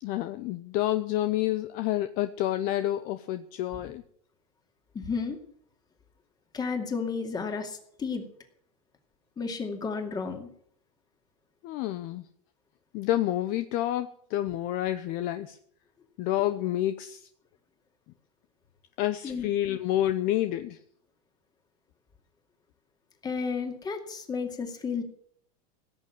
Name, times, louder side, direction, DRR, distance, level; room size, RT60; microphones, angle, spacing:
voice 1, 0.0-4.0 11.6-12.2 12.9-15.6 16.2-17.2 19.0-20.8, left 13 dB, 50° left, 10 dB, 0.8 m, -29 dB
voice 2, 4.9-5.4 6.5-8.2 9.4-10.5 19.2-19.5 23.2-25.0, left 5 dB, 20° left, 5 dB, 2.4 m, -32 dB
16.5 x 6.8 x 8.6 m, 0.66 s
supercardioid pair, 125°, 19 cm